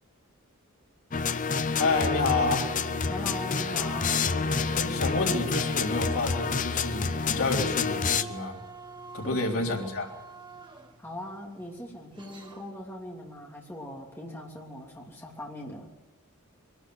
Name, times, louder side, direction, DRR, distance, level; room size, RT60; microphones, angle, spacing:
sound 1, 1.1-8.2, left 5 dB, 35° left, 0.6 m, -28 dB
sound 2, 1.7-5.9, right 2 dB, 80° right, 4.6 m, -49 dB
voice 1, 1.8-2.6 4.7-8.6 9.1-10.1, left 3 dB, 75° left, -1 dB, 3.8 m, -29 dB
sound 3, 1.8-12.8, right 4 dB, 20° right, 1.7 m, -45 dB
voice 2, 3.1-4.2 9.3-9.7 11.0-15.9, left 1 dB, 10° left, -2 dB, 3.1 m, -40 dB
23.0 x 12.5 x 9.6 m, 1.0 s
head